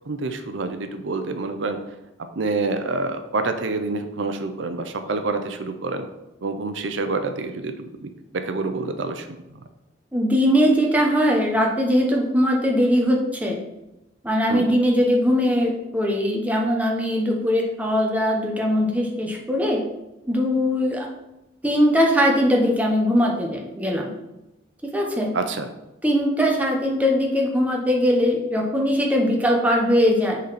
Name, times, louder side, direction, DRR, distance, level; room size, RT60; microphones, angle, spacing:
voice 1, 0.1-1.8 2.4-6.1 6.4-9.4 14.5-14.7 25.3-25.7, right 3 dB, 75° right, 8 dB, 0.6 m, -27 dB
voice 2, 10.1-13.6 14.2-19.8 20.3-21.1 21.6-24.1 24.8-25.3 26.0-30.4, equal, 10° right, 0 dB, 1.0 m, -20 dB
8.2 x 4.0 x 4.2 m, 0.95 s
head